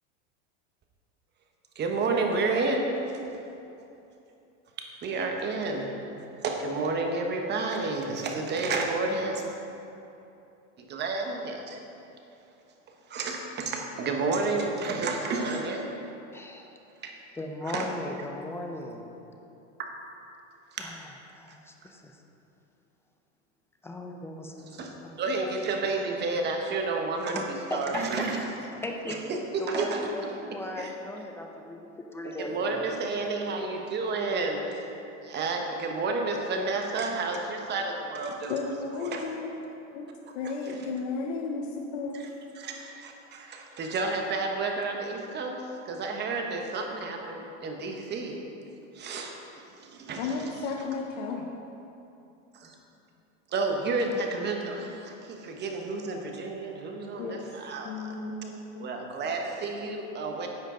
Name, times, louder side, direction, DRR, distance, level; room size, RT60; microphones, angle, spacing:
voice 1, 1.8-3.2 5.0-6.0 6.4-9.4 10.8-11.8 13.1-15.9 17.0-17.1 17.6-17.9 19.8-19.9 20.7-20.9 24.7-28.4 29.1-30.1 30.8-30.9 32.4-34.9 35.2-39.3 42.1-42.2 42.6-48.4 48.9-49.3 49.8-50.4 52.5-52.7 53.5-58.1 58.8-60.5, right 3 dB, 25° right, 2 dB, 1.1 m, -31 dB
voice 2, 16.3-16.7 17.4-19.2 20.8-21.0 21.3-22.1 23.8-24.8 25.0-25.1 27.3-28.3 28.8-29.2 29.6-32.9, left 1 dB, 5° left, 3 dB, 0.4 m, -37 dB
voice 3, 38.5-39.5 39.9-40.1 40.3-42.2 50.2-51.5 57.2-57.4 57.8-58.9, left 4 dB, 75° left, 1 dB, 0.9 m, -34 dB
10.5 x 7.4 x 3.8 m, 2.8 s
supercardioid pair, 135°, 38 cm